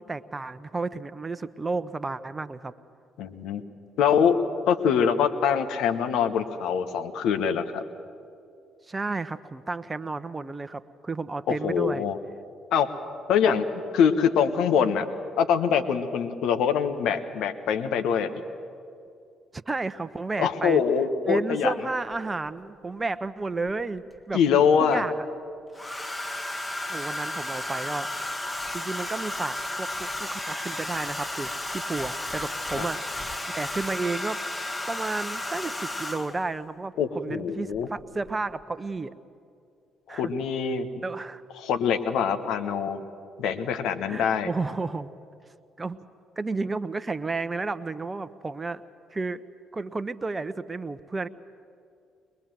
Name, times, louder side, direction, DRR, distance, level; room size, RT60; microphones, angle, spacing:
voice 1, 0.0-2.7 8.9-12.0 19.5-20.8 21.2-24.4 24.8-25.2 26.9-28.1 28.7-34.4 34.9-39.2 40.1-40.3 41.0-41.4 44.1-45.1 45.8-46.0 46.4-48.8 49.1-49.4 49.7-51.3, right 3 dB, 25° right, 12 dB, 1.0 m, -32 dB
voice 2, 3.2-3.6 4.0-4.4 4.7-7.8 11.5-12.2 12.7-12.9 13.3-15.0 15.4-18.3 20.4-21.7 24.3-25.0 32.7-32.9 37.0-37.9 40.2-40.9 41.6-43.0 43.4-44.5, left 7 dB, 70° left, 8 dB, 1.2 m, -24 dB
Domestic sounds home sounds, 22.1-22.2 23.7-24.3 25.7-36.5 37.7-38.0 38.3-38.6, left 1 dB, 20° left, 1.4 m, -33 dB
22.5 x 21.0 x 7.7 m, 2.5 s
hypercardioid pair, 50°, 0 cm